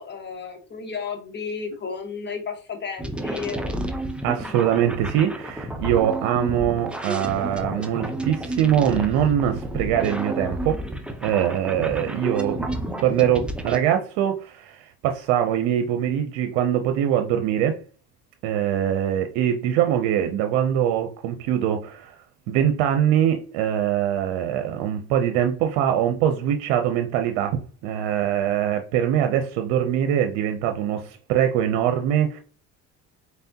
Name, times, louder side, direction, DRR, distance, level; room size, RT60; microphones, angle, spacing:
voice 1, 0.0-3.6, left 6 dB, 30° left, 1.3 m, -33 dB
sound 1, 3.0-13.8, right 1 dB, 5° right, 0.6 m, -31 dB
voice 2, 4.2-10.8 11.2-12.7 13.0-17.8 18.4-22.2 22.5-32.4, right 10 dB, 85° right, 0.6 m, -23 dB
4.1 x 3.4 x 2.8 m
supercardioid pair, 95°, 36 cm